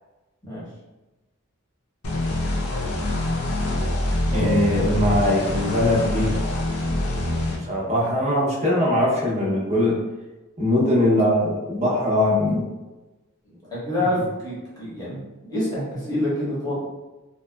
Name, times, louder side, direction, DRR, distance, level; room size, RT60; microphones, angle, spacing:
sound 1, 2.0-7.6, left 1 dB, 80° left, 0.5 m, -25 dB
voice 1, 4.3-6.3 7.5-10.0 10.6-12.6, left 1 dB, 30° right, -5 dB, 0.7 m, -21 dB
voice 2, 13.7-15.2 15.5-16.9, left 1 dB, 15° left, -9 dB, 1.1 m, -26 dB
2.8 x 2.1 x 2.2 m, 1.1 s
head